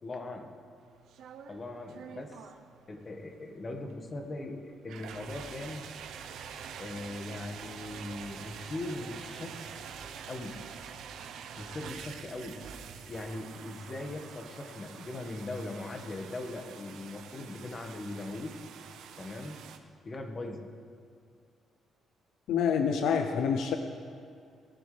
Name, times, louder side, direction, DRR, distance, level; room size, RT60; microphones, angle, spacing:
voice 1, 0.0-0.5 1.5-2.5 2.9-5.9 6.8-9.6 10.2-10.6 11.6-12.6 13.1-18.6 19.2-19.6 20.0-20.7, left 2 dB, 35° left, 3 dB, 1.7 m, -40 dB
sound 1, 0.8-19.8, right 7 dB, 80° right, 0.8 m, -46 dB
voice 2, 22.5-23.8, left 7 dB, 80° left, 6 dB, 0.7 m, -27 dB
20.5 x 11.0 x 3.4 m, 2.5 s
cardioid pair, 90°, 0 cm